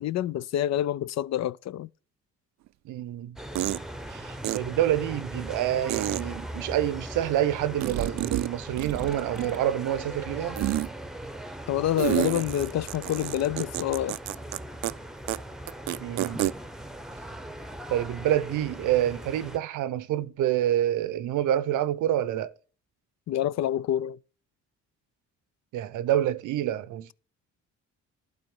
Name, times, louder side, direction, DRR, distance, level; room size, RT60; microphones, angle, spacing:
voice 1, 0.0-1.9 11.7-14.2 23.3-24.2, left 12 dB, 60° left, 0.5 m, -27 dB
sound 1, 2.7-2.8 3.6-3.8 4.4-4.6 5.9-6.2 7.8-8.5 8.8-9.7 10.6-10.9 12.0-14.6 14.8-14.9 15.3-15.4 15.7-16.5, right 15 dB, 65° right, 0.4 m, -29 dB
voice 2, 2.8-3.4 4.1-10.6 16.0-16.4 17.9-22.5 25.7-27.1, right 12 dB, 85° right, 0.8 m, -27 dB
sound 2, 3.4-19.6, right 1 dB, ahead, 0.8 m, -39 dB
12.0 x 4.0 x 7.1 m
cardioid pair, 90°, 30 cm